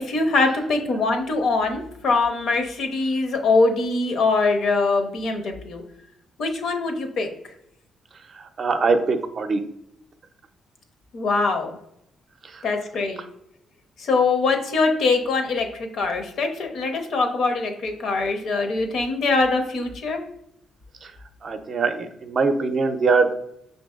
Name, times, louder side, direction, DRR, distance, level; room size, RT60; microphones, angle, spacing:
voice 1, 0.0-5.8 6.4-7.3 11.1-11.8 12.6-13.2 14.0-20.2, left 3 dB, 65° left, 5 dB, 0.7 m, -23 dB
voice 2, 8.3-9.6 12.4-12.7 21.0-21.1 21.4-23.3, right 4 dB, 50° right, 8 dB, 0.5 m, -22 dB
5.6 x 2.6 x 2.3 m, 0.77 s
cardioid pair, 90°, 0 cm